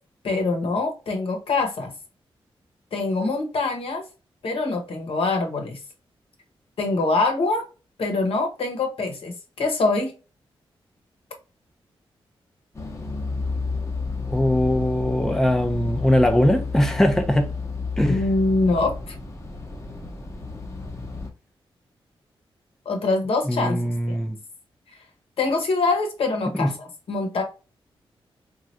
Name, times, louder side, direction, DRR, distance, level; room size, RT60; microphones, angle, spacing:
voice 1, 0.2-1.9 2.9-4.0 4.4-5.8 6.8-7.7 8.0-10.1 18.1-19.2 22.8-24.2 25.4-27.4, left 3 dB, 70° left, 0.9 m, -24 dB
sound 1, 12.7-21.3, left 4 dB, 30° left, 0.8 m, -31 dB
voice 2, 14.3-17.5 18.0-18.2 23.5-24.4 26.6-26.7, left 1 dB, 5° left, 0.5 m, -21 dB
3.1 x 2.4 x 2.6 m
cardioid pair, 65°, 10 cm